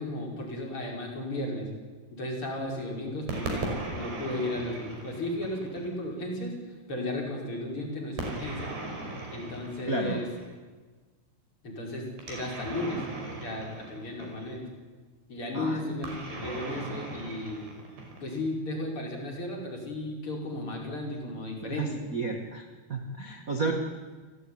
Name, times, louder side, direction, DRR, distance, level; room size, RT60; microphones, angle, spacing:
voice 1, 0.0-1.7 2.1-6.6 6.9-8.7 9.3-10.3 11.6-13.0 13.4-14.7 15.3-17.6 18.1-22.0 23.7-23.8, left 1 dB, 30° left, 0 dB, 5.9 m, -34 dB
sound 1, 3.3-5.9 8.2-10.5 12.2-14.7 16.0-18.5, right 2 dB, 70° right, 7.4 m, -38 dB
voice 2, 9.9-10.2 15.5-15.8 21.7-22.6 22.9-23.7, right 3 dB, 45° right, 3 dB, 1.0 m, -32 dB
29.0 x 17.5 x 9.8 m, 1.4 s
omnidirectional pair, 5.0 m